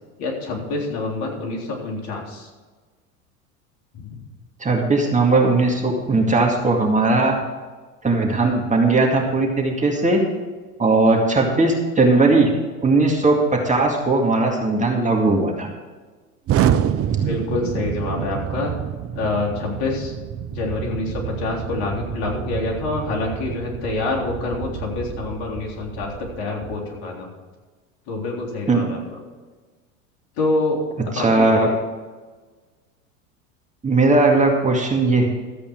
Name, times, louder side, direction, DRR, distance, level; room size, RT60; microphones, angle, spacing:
voice 1, 0.2-2.5 3.9-4.2 17.2-18.7 19.1-20.1 20.5-27.3 28.1-29.2 30.4-30.8 31.2-31.7, left 3 dB, 50° left, -1 dB, 3.6 m, -26 dB
voice 2, 4.6-7.3 8.0-10.2 10.8-12.5 12.8-15.7 28.7-28.8 31.1-31.7 33.8-35.3, right 3 dB, 15° right, 1 dB, 2.2 m, -18 dB
Explosion, 16.5-26.4, right 10 dB, 35° right, 0.7 m, -27 dB
13.5 x 8.4 x 4.7 m, 1.4 s
hypercardioid pair, 90°, 42 cm